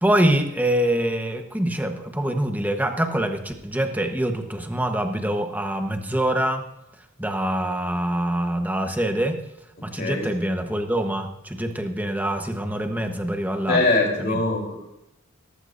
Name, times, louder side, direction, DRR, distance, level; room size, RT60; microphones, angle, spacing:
voice 1, 0.0-6.6 7.2-9.4 9.8-13.8 14.2-14.4, right 1 dB, 10° right, 5 dB, 1.1 m, -25 dB
voice 2, 13.7-14.7, left 2 dB, 45° left, -1 dB, 3.7 m, -22 dB
17.0 x 14.5 x 2.6 m, 0.87 s
head